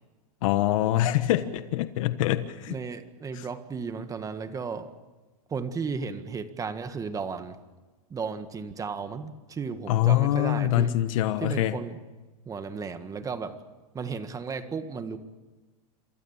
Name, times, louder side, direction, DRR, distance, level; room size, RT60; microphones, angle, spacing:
voice 1, 0.4-2.7 3.3-3.4 9.9-11.8, left 13 dB, 65° left, 11 dB, 1.4 m, -24 dB
voice 2, 2.7-4.9 5.5-7.6 8.1-10.9 11.4-12.0 12.4-13.6 13.9-15.2, right 5 dB, 20° right, 9 dB, 1.7 m, -34 dB
27.0 x 24.5 x 7.4 m, 1.2 s
supercardioid pair, 135°, 19 cm